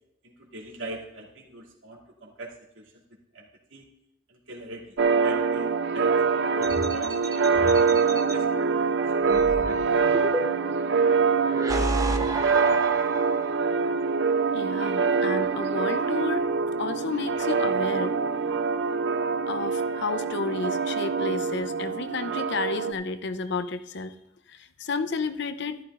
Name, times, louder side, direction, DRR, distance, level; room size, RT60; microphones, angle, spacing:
voice 1, 0.2-2.9 3.3-3.4 3.7-3.8 4.3-5.7 5.9-10.2, right 1 dB, 90° right, -3 dB, 2.7 m, -41 dB
sound 1, 5.0-22.9, right 5 dB, 65° right, 0.6 m, -24 dB
sound 2, 6.6-8.3 9.3-10.8 11.4-13.6, right 1 dB, 20° right, 0.7 m, -31 dB
voice 2, 14.5-16.5 16.8-18.2 18.6-18.7 19.5-24.1 24.5-25.8, left 3 dB, 60° left, 10 dB, 0.7 m, -31 dB
13.5 x 12.0 x 2.5 m, 0.81 s
head